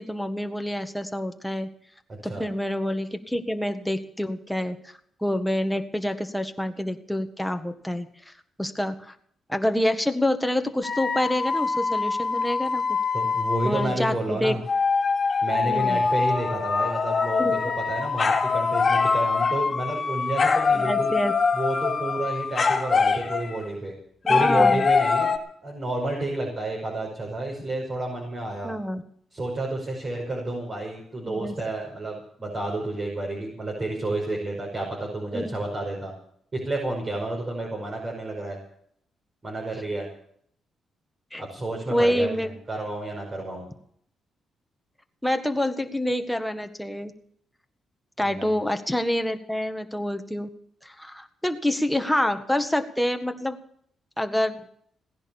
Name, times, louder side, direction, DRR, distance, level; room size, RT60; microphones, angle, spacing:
voice 1, 0.0-1.7 2.2-4.8 5.2-8.3 8.6-9.1 9.5-13.0 13.6-14.6 15.6-16.0 17.4-17.7 20.7-21.3 24.2-24.8 28.6-29.0 31.3-31.5 35.3-35.5 41.3-41.5 41.9-42.5 45.2-47.1 48.2-50.5 50.8-53.6 54.2-54.6, left 1 dB, 5° left, 6 dB, 1.7 m, -27 dB
voice 2, 2.1-2.5 13.1-14.6 15.4-21.1 21.5-23.9 24.3-25.3 25.6-28.7 29.3-36.1 36.5-38.6 39.4-40.1 41.4-43.7 48.2-48.5, right 2 dB, 35° right, -2 dB, 5.5 m, -30 dB
sound 1, 10.8-13.9 14.7-23.6 24.3-25.4, left 4 dB, 35° left, 2.7 m, -24 dB
18.0 x 10.5 x 7.2 m, 0.65 s
cardioid pair, 90°, 0 cm